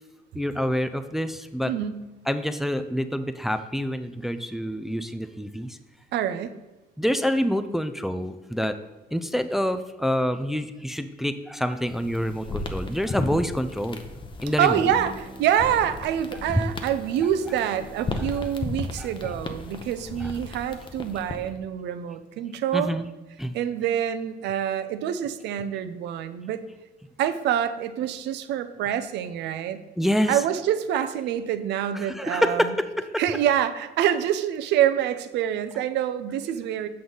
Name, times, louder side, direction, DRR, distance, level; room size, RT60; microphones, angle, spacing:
voice 1, 0.3-1.7 2.3-5.8 7.0-8.8 9.1-14.0 14.4-14.9 19.0-19.1 20.2-20.3 22.7-23.1 23.4-23.5 30.0-30.4 31.9-33.2, equal, ahead, 10 dB, 0.4 m, -27 dB
voice 2, 1.7-2.0 6.1-6.6 14.6-22.9 23.5-26.6 27.2-29.8 30.3-32.7 33.2-36.9, right 10 dB, 80° right, 11 dB, 0.6 m, -26 dB
sound 1, 11.8-21.6, left 3 dB, 30° left, 0.7 m, -35 dB
Bowed string instrument, 14.8-20.3, right 2 dB, 35° right, 1.4 m, -47 dB
7.9 x 5.3 x 3.9 m, 1.1 s
cardioid pair, 105°, 18 cm